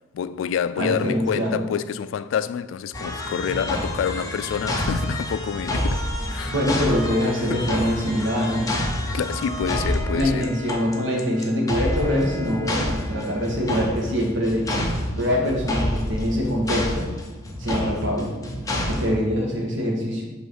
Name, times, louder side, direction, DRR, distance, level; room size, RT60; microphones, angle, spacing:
voice 1, 0.1-6.0 6.3-6.6 6.9-7.1 7.5-7.7 9.0-10.5, left 7 dB, 85° left, 0.3 m, -27 dB
voice 2, 0.8-1.6 6.5-8.7 10.1-14.8 15.2-17.1 17.6-18.3 18.9-20.3, equal, 80° right, 1.4 m, -24 dB
sound 1, 2.9-19.1, left 1 dB, 20° left, 0.7 m, -28 dB
6.1 x 3.1 x 5.6 m
head